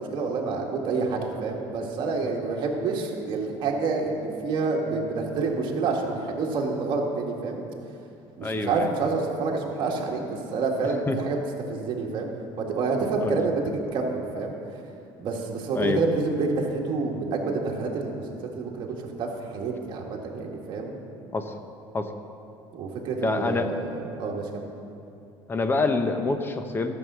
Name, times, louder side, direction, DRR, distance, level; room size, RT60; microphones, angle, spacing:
voice 1, 0.0-7.6 8.4-11.4 11.7-12.3 12.6-14.5 15.2-18.2 18.5-18.9 19.2-21.0 22.7-24.6, right 4 dB, 50° right, 0 dB, 1.8 m, -28 dB
voice 2, 8.4-8.9 11.1-11.2 13.2-13.4 15.7-16.0 21.3-21.5 21.9-22.1 23.2-23.7 25.5-26.9, left 3 dB, 20° left, 7 dB, 0.8 m, -26 dB
13.0 x 7.1 x 6.2 m, 2.6 s
cardioid pair, 130°, 10 cm